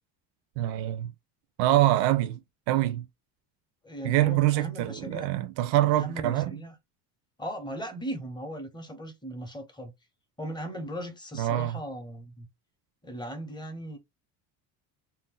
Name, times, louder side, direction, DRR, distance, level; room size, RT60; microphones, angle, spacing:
voice 1, 0.6-1.1 1.6-2.4 2.7-3.1 4.0-6.5 11.4-11.8, right 14 dB, 80° right, 0.6 m, -25 dB
voice 2, 3.8-5.3 5.8-6.7 7.4-9.9 10.4-12.5 13.0-14.0, equal, 10° left, 0.6 m, -38 dB
2.7 x 2.1 x 3.7 m
cardioid pair, 130°, 44 cm